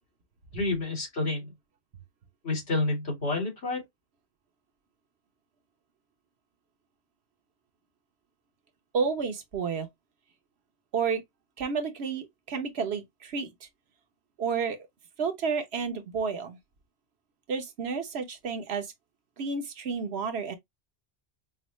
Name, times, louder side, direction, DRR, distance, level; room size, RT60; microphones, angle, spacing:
voice 1, 0.5-1.5 2.4-3.8, left 2 dB, 90° left, 2.5 m, -29 dB
voice 2, 8.9-9.9 10.9-11.2 11.6-13.7 14.4-14.8 15.2-16.6 17.5-18.9 19.4-20.6, right 5 dB, 80° right, 1.1 m, -31 dB
5.4 x 2.0 x 3.0 m
omnidirectional pair, 1.1 m